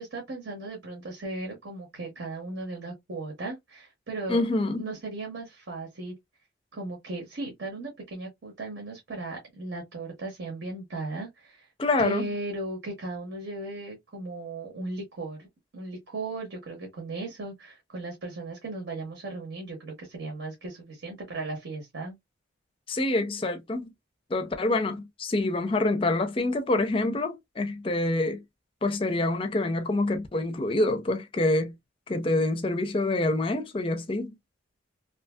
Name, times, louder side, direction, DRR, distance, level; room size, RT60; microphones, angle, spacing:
voice 1, 0.0-4.5 4.8-6.1 6.7-11.7 12.0-15.5 15.7-22.2, right 2 dB, 65° right, 0.9 m, -37 dB
voice 2, 4.3-4.9 11.8-12.2 22.9-23.9 24.3-28.4 28.8-31.7 32.1-34.3, left 2 dB, 25° left, 0.4 m, -26 dB
2.6 x 2.6 x 2.2 m
head